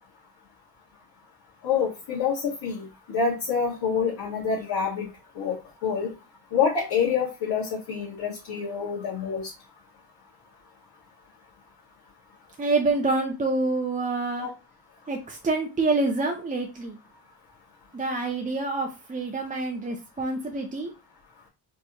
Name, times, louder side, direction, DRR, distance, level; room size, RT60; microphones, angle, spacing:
voice 1, 1.6-5.1 5.3-5.6 5.8-6.1 6.5-9.5 14.4-14.5, left 6 dB, 60° left, -7 dB, 1.7 m, -27 dB
voice 2, 12.6-14.5 15.1-17.0 17.9-20.9, right 3 dB, 20° right, 2 dB, 0.6 m, -27 dB
4.5 x 3.0 x 2.9 m, 0.29 s
cardioid pair, 90°, 44 cm